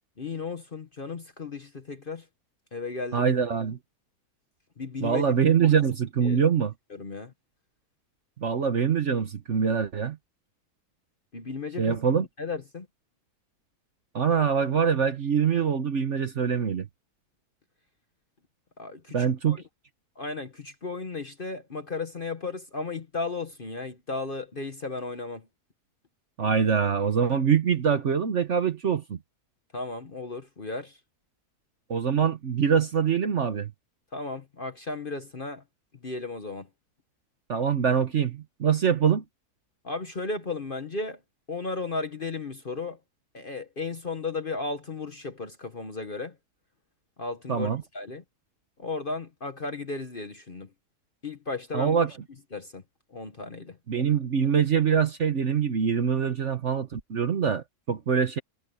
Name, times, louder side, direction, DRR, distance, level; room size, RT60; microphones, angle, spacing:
voice 1, 0.2-2.2 2.7-3.3 4.8-5.7 6.2-6.4 6.9-7.3 11.3-12.0 12.4-12.9 18.8-19.6 20.2-25.5 29.7-31.0 34.1-35.6 36.0-36.7 39.8-41.2 41.5-43.0 43.3-46.4 47.2-48.2 48.8-50.7 51.2-52.2 52.5-52.8 53.1-53.8, left 3 dB, 35° left, 1.3 m, -35 dB
voice 2, 3.1-3.8 5.0-6.7 8.4-10.2 11.8-12.3 14.1-16.9 19.1-19.6 26.4-29.2 31.9-33.7 37.5-39.2 47.5-47.8 51.7-52.1 53.9-58.4, right 7 dB, 50° right, 1.3 m, -24 dB
omnidirectional pair, 1.6 m